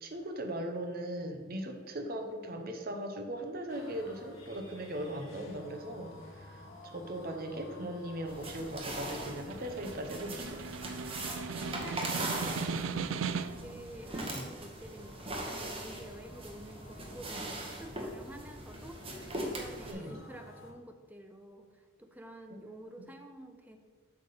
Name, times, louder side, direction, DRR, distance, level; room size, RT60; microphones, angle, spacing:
voice 1, 0.0-10.7 14.3-14.4 19.9-20.2 22.5-23.1, right 1 dB, 45° right, 5 dB, 0.9 m, -39 dB
sound 1, 3.7-20.7, left 1 dB, 80° left, 1.4 m, -52 dB
sound 2, 8.3-19.9, right 1 dB, 30° right, 1.1 m, -40 dB
Snare drum, 8.9-13.8, right 5 dB, 75° right, 0.4 m, -38 dB
voice 2, 11.5-13.3 13.6-23.8, right 1 dB, 10° right, 6 dB, 0.5 m, -50 dB
7.9 x 3.6 x 6.7 m, 1.5 s
head